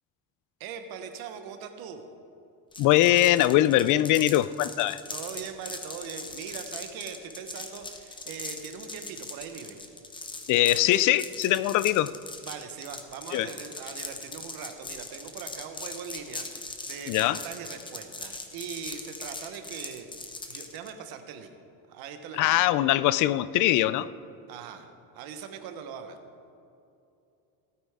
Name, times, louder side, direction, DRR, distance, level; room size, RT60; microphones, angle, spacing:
voice 1, 0.6-2.1 5.1-9.8 12.4-21.5 21.9-22.6 24.5-24.9 25.1-26.2, right 7 dB, 75° right, 7 dB, 1.2 m, -41 dB
sound 1, 2.7-20.9, left 3 dB, 15° left, 0.9 m, -40 dB
voice 2, 2.8-5.0 10.5-12.1 13.3-13.5 17.1-17.4 22.4-24.1, left 14 dB, 55° left, 16 dB, 0.5 m, -22 dB
17.0 x 9.2 x 3.6 m, 2.7 s
cardioid pair, 140°, 37 cm